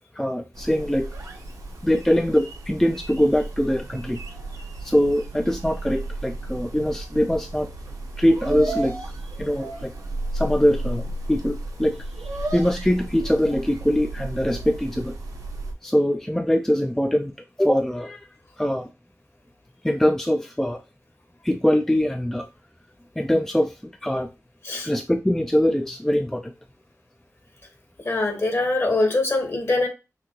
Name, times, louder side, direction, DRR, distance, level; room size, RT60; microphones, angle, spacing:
voice 1, 0.2-1.1 1.8-4.2 4.8-7.7 8.2-9.1 9.4-9.9 10.3-11.0 11.3-15.2 15.8-17.3 17.6-18.3 18.6-18.9 19.8-20.8 21.4-22.5 23.2-24.3 24.8-26.5, equal, 5° left, 6 dB, 0.4 m, -22 dB
sound 1, 0.5-15.7, right 2 dB, 90° right, 1.1 m, -34 dB
voice 2, 28.0-29.9, left 2 dB, 45° left, 3 dB, 1.5 m, -23 dB
5.8 x 2.8 x 2.9 m, 0.27 s
wide cardioid pair, 95°, 6 cm